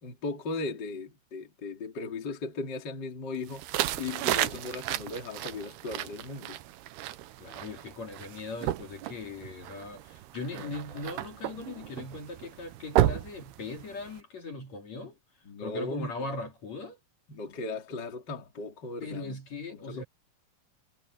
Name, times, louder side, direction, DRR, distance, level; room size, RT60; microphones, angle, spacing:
voice 1, 0.0-3.7 4.0-6.6 10.5-11.0 15.4-16.3 17.3-19.4 19.7-20.0, left 3 dB, 30° left, 3.1 m, -37 dB
sound 1, 3.5-14.2, right 14 dB, 90° right, 3.0 m, -33 dB
voice 2, 7.4-15.2 15.6-17.0 19.0-20.0, left 3 dB, 50° left, 3.9 m, -39 dB
omnidirectional pair, 4.4 m